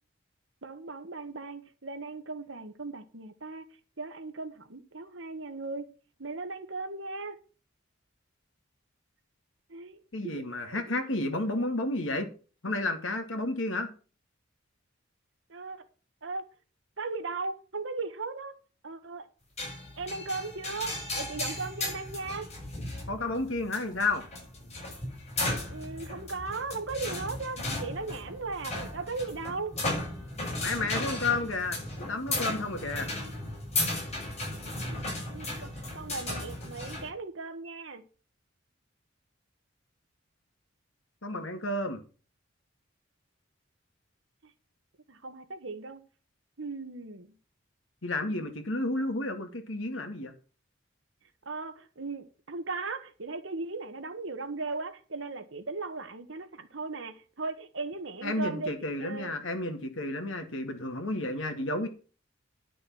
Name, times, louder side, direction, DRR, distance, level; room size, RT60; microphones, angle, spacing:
voice 1, 0.6-3.6 4.0-5.9 6.2-7.4 9.7-10.9 11.6-11.8 15.5-15.8 16.2-16.4 17.0-18.6 18.8-19.3 20.0-22.5 25.7-29.7 34.8-38.0 44.4-44.5 45.1-46.0 46.6-47.3 51.4-59.3, right 3 dB, 70° right, 1.5 m, -37 dB
voice 2, 10.1-12.3 12.6-13.9 23.1-24.2 30.6-31.8 32.1-33.1 41.2-42.0 48.0-50.3 58.2-61.9, left 2 dB, 70° left, 2.3 m, -31 dB
sound 1, 19.6-37.1, left 2 dB, 35° left, 6.7 m, -35 dB
11.5 x 6.3 x 6.2 m
head